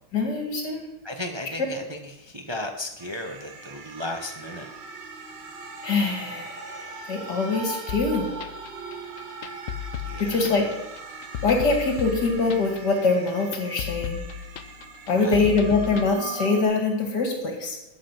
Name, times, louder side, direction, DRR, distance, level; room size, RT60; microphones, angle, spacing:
voice 1, 0.1-0.9 5.8-8.3 10.2-10.7 11.4-14.2 15.1-17.8, left 3 dB, 50° left, 3 dB, 2.8 m, -24 dB
voice 2, 1.0-4.7 10.0-10.6 15.1-15.5, left 1 dB, 25° right, 3 dB, 0.6 m, -35 dB
sound 1, 3.0-16.6, right 4 dB, 60° right, 2.0 m, -40 dB
sound 2, 7.9-16.1, left 9 dB, 75° left, 0.7 m, -35 dB
13.0 x 8.6 x 5.9 m, 0.92 s
omnidirectional pair, 2.3 m